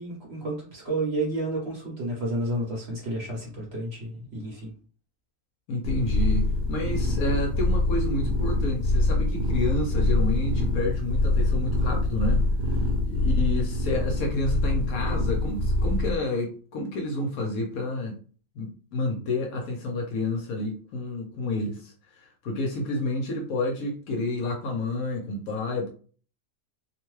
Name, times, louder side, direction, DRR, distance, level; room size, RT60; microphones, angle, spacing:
voice 1, 0.0-4.7, right 1 dB, 50° right, -2 dB, 0.9 m, -31 dB
voice 2, 5.7-18.1 18.6-25.9, left 2 dB, 65° left, 1 dB, 1.0 m, -30 dB
sound 1, 5.8-16.2, left 2 dB, 75° right, 1.2 m, -25 dB
2.8 x 2.1 x 3.1 m, 0.41 s
omnidirectional pair, 1.8 m